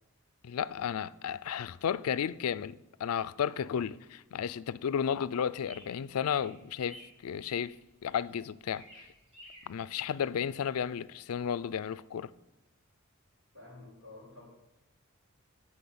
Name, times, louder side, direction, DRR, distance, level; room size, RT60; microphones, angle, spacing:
voice 1, 0.4-7.8 8.0-9.1 9.7-12.3, left 8 dB, 75° left, 0.4 m, -33 dB
sound 1, 5.5-11.1, equal, 30° right, 2.8 m, -55 dB
voice 2, 13.5-14.4, left 2 dB, 60° right, 4.8 m, -50 dB
10.0 x 6.0 x 8.6 m
head